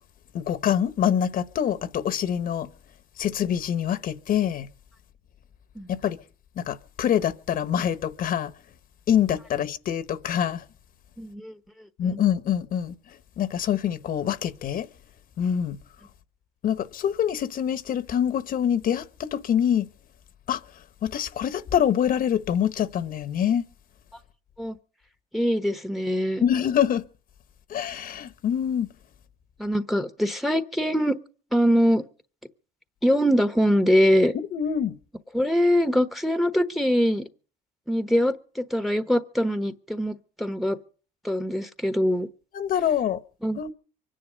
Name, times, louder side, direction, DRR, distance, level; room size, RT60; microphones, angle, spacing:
voice 1, 0.3-2.7 3.2-4.7 6.0-6.2 6.6-8.5 9.1-10.6 12.0-12.9 13.4-14.9 15.4-15.8 16.6-19.9 20.5-20.6 21.0-23.7 26.4-27.0 27.7-28.9 34.5-34.9 42.5-43.2 43.6-43.7, left 9 dB, 60° left, 1.1 m, -25 dB
voice 2, 11.2-11.5 12.0-12.2 24.6-24.7 25.3-26.4 29.6-31.2 31.5-32.0 33.0-34.3 35.3-37.2 37.9-40.8 41.2-42.3 43.4-43.6, equal, ahead, 1.1 m, -23 dB
24.0 x 10.5 x 5.2 m
cardioid pair, 110°, 17 cm